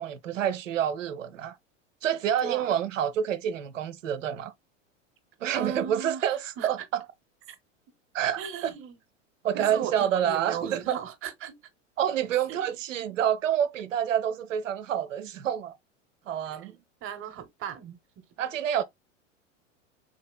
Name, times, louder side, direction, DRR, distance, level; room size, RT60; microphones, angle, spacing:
voice 1, 0.0-1.6 2.0-4.5 5.4-7.0 8.1-8.7 9.4-11.0 12.0-15.7 16.3-16.8 18.4-18.8, right 9 dB, 80° right, 0.6 m, -28 dB
voice 2, 5.5-6.7 7.5-7.6 8.4-9.0 9.5-11.6 12.5-12.6 16.6-16.7 17.0-18.0, right 8 dB, 35° right, 0.8 m, -37 dB
4.0 x 2.7 x 2.3 m
hypercardioid pair, 90°, 38 cm